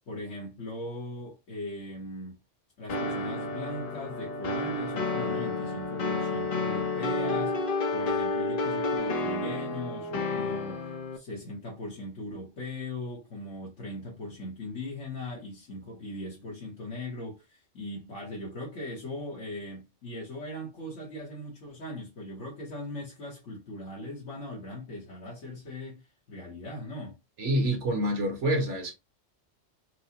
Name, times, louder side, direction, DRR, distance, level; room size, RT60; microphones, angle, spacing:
voice 1, 0.1-2.4 2.8-27.2, left 1 dB, 75° left, 1.4 m, -39 dB
sound 1, 2.9-11.2, left 3 dB, 50° left, 0.8 m, -30 dB
voice 2, 27.4-28.9, right 1 dB, 70° right, 1.4 m, -27 dB
4.6 x 2.0 x 2.8 m
omnidirectional pair, 1.3 m